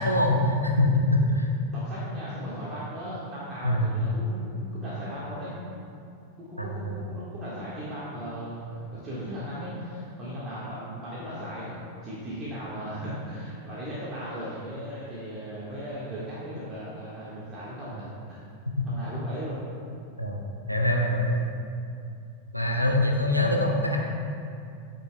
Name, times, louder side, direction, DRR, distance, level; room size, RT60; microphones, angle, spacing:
voice 1, 0.0-1.5 3.6-4.0 6.6-6.9 20.2-20.4 20.7-21.4 22.5-24.0, left 1 dB, 90° left, 0 dB, 0.9 m, -24 dB
voice 2, 1.7-5.5 6.5-18.4 18.8-19.6 23.4-23.8, equal, 30° right, -8 dB, 1.6 m, -37 dB
12.5 x 6.6 x 2.3 m, 2.5 s
figure-of-eight pair, 90°, 0 cm